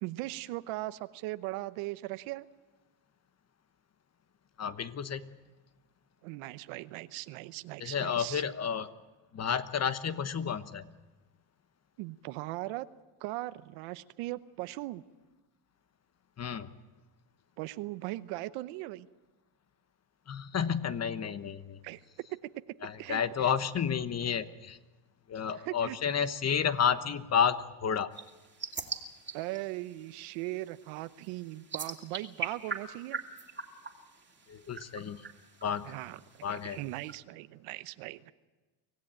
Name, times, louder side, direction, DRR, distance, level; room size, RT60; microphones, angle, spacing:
voice 1, 0.0-2.5 6.2-8.4 12.0-12.9 13.2-15.0 17.6-19.1 21.8-22.0 23.0-23.5 25.5-26.0 29.3-33.2 35.8-36.2 36.5-38.3, right 18 dB, 85° right, 13 dB, 1.0 m, -39 dB
voice 2, 4.6-5.3 7.8-8.9 9.3-10.9 16.4-16.7 20.3-21.8 22.8-24.8 25.3-28.1 34.5-35.2 35.6-35.9 36.4-36.8, left 7 dB, 30° left, 12 dB, 1.2 m, -31 dB
sound 1, 28.1-37.2, right 4 dB, 20° right, 2.4 m, -43 dB
25.0 x 16.5 x 8.9 m, 1.3 s
cardioid pair, 115°, 49 cm